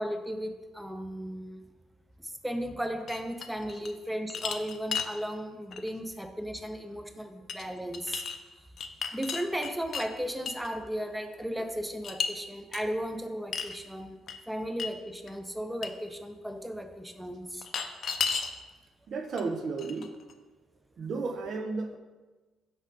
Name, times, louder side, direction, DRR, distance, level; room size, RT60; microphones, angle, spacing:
voice 1, 0.0-1.6 2.2-8.2 9.1-14.2 14.5-17.7, equal, 5° right, 7 dB, 0.6 m, -35 dB
sound 1, 3.1-3.9 4.3-5.1 5.7-5.9 7.5-7.6 7.9-8.4 8.8-10.1 10.5-10.7 12.0-12.3 12.7-12.8 13.5-13.8 14.3-14.4 14.8-14.9 15.3-15.4 15.8-15.9 17.6-18.5 19.4-19.5 19.8-20.3, left 6 dB, 55° left, 0.5 m, -33 dB
voice 2, 19.1-20.1 21.0-22.0, right 4 dB, 50° right, 6 dB, 0.5 m, -33 dB
5.1 x 4.1 x 5.1 m, 1.2 s
figure-of-eight pair, 45°, 0 cm